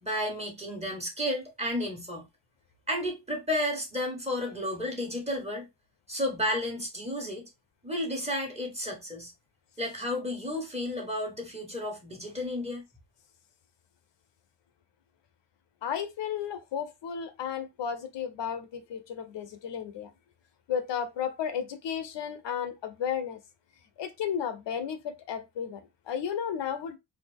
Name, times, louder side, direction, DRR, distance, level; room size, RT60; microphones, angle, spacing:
voice 1, 0.0-2.3 2.9-5.7 6.1-7.5 7.8-9.3 9.8-12.8, left 1 dB, 15° right, 1.3 m, -32 dB
voice 2, 15.8-20.1 20.7-23.4 24.0-27.0, left 8 dB, 70° left, 0.7 m, -33 dB
4.1 x 2.6 x 3.4 m
wide cardioid pair, 150°, 45 cm